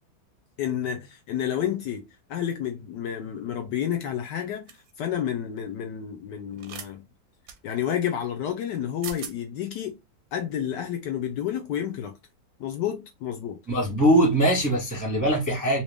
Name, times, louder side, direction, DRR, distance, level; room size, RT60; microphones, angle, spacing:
voice 1, 0.6-2.0 2.3-7.0 7.6-10.0 10.3-12.1 12.6-13.6, left 9 dB, 75° left, 1.1 m, -30 dB
sound 1, 4.7-4.9 6.6-6.9 7.5-7.6 8.7-8.8 9.0-9.4, right 7 dB, 65° right, 0.8 m, -39 dB
voice 2, 13.7-15.8, right 1 dB, 20° right, 0.5 m, -21 dB
3.1 x 2.8 x 3.3 m
omnidirectional pair, 2.2 m